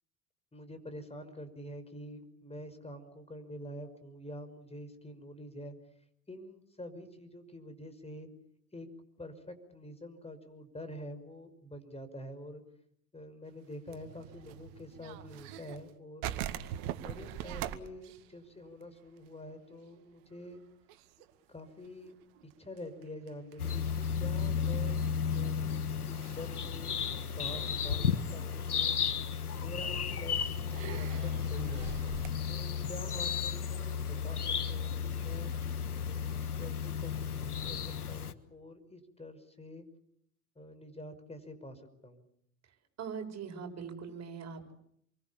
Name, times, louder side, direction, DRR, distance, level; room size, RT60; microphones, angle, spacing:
voice 1, 0.5-5.8 6.3-8.3 8.7-8.9 9.2-12.6 13.1-16.4 16.9-20.6 21.5-22.2 22.4-25.0 25.3-27.0 27.4-28.1 28.3-29.1 29.6-31.9 32.4-35.5 36.0-39.9 40.6-42.3, left 1 dB, 15° left, 11 dB, 5.8 m, -47 dB
sound 1, 13.7-15.9 16.2-19.5 19.7-19.8 20.3-20.6 20.9-24.3 25.1-25.2 26.2-26.5 27.0-27.6 28.2-28.3 29.6-29.7 30.7-32.3, right 12 dB, 60° right, 2.1 m, -42 dB
sound 2, 23.6-38.3, left 7 dB, 85° left, 1.4 m, -33 dB
voice 2, 43.0-44.7, right 6 dB, 35° right, 4 dB, 6.9 m, -41 dB
29.0 x 24.0 x 7.2 m, 0.71 s
hypercardioid pair, 70°, 44 cm